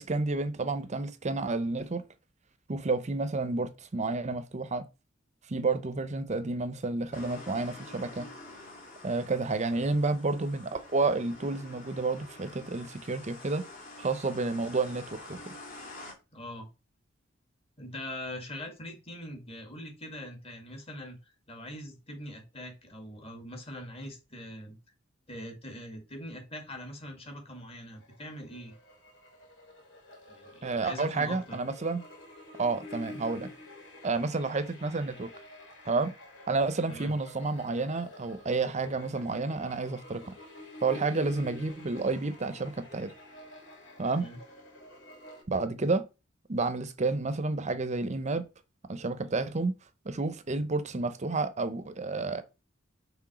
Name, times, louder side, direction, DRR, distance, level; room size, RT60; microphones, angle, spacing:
voice 1, 0.0-2.0 2.7-4.8 5.5-8.3 9.0-13.6 14.0-15.5 30.6-32.0 32.6-33.5 34.0-35.3 35.8-36.1 36.5-40.3 40.8-43.1 44.0-44.3 45.5-46.1 46.5-48.4 48.9-49.7 50.1-52.4, right 3 dB, 35° right, 0.7 m, -30 dB
sound 1, 7.1-16.1, left 2 dB, 45° left, 2.1 m, -48 dB
voice 2, 16.3-16.7 17.8-24.8 25.3-28.7 30.3-31.6 36.9-37.1 44.2-44.4, left 1 dB, 30° left, 1.9 m, -42 dB
sound 2, 28.0-45.4, left 1 dB, 75° left, 3.5 m, -49 dB
6.1 x 3.6 x 6.0 m
head